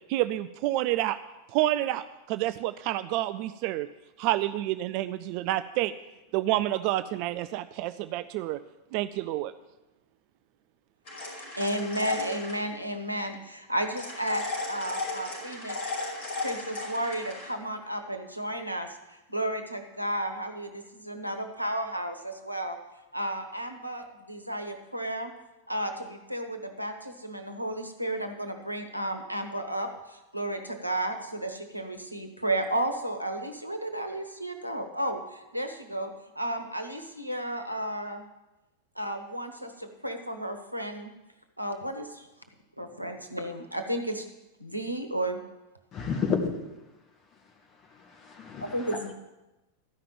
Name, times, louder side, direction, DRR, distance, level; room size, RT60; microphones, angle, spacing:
voice 1, 0.1-1.2 1.5-3.9 4.2-5.9 6.3-8.6 8.9-9.5, right 15 dB, 45° right, 13 dB, 0.4 m, -28 dB
sound 1, 11.1-12.6 14.0-17.5, left 3 dB, 45° left, 5.4 m, -35 dB
voice 2, 11.6-14.4 14.7-15.8 16.4-18.9 19.3-22.8 23.1-25.3 25.7-29.9 30.3-35.2 35.5-38.2 39.0-41.1 41.6-42.2 42.8-44.2 44.6-45.4 48.6-49.1, right 1 dB, 90° right, 7 dB, 1.1 m, -33 dB
voice 3, 45.9-46.5 47.9-49.1, left 6 dB, 30° left, 5 dB, 1.9 m, -31 dB
13.5 x 5.9 x 8.8 m, 1.0 s
figure-of-eight pair, 90°, 0 cm